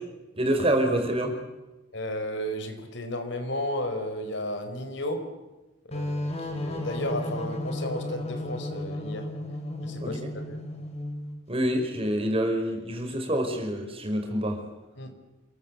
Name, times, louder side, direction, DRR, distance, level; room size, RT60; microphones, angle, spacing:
voice 1, 0.4-1.4 10.0-10.2 11.5-14.6, right 1 dB, 30° right, 4 dB, 5.3 m, -26 dB
voice 2, 1.9-5.3 5.9-9.3 9.8-10.6 15.0-15.1, left 1 dB, 65° left, 7 dB, 4.7 m, -33 dB
sound 1, 5.9-11.4, left 1 dB, 35° left, 6.0 m, -33 dB
29.0 x 22.5 x 8.5 m, 1.1 s
head